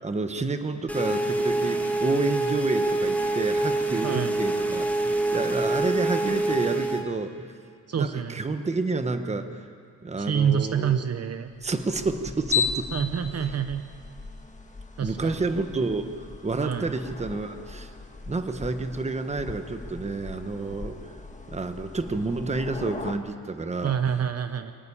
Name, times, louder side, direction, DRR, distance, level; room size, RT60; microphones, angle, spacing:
voice 1, 0.0-7.5 7.9-9.7 10.0-11.0 11.6-12.9 13.4-13.6 15.0-17.9 18.3-21.0 21.5-23.9, right 3 dB, 20° right, 8 dB, 1.1 m, -29 dB
sound 1, 0.9-7.0, right 2 dB, 5° left, 1.5 m, -26 dB
voice 2, 4.0-4.3 7.9-8.4 10.2-11.5 12.9-13.8 15.0-15.4 16.6-16.9 23.8-24.7, right 8 dB, 45° right, 9 dB, 0.9 m, -27 dB
sound 2, 11.5-23.1, left 6 dB, 20° left, 1.4 m, -36 dB
24.5 x 14.0 x 9.9 m, 2.4 s
wide cardioid pair, 155°, 34 cm